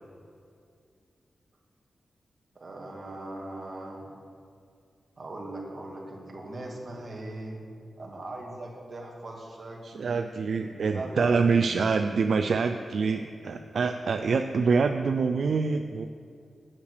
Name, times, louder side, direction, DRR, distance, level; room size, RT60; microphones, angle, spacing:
voice 1, 2.6-4.1 5.2-7.6 8.0-10.2 10.6-11.4 14.5-14.6, right 2 dB, 40° right, -2 dB, 1.9 m, -40 dB
voice 2, 9.8-16.1, right 4 dB, 65° right, 7 dB, 0.4 m, -26 dB
8.8 x 6.5 x 8.3 m, 2.3 s
wide cardioid pair, 145°, 0 cm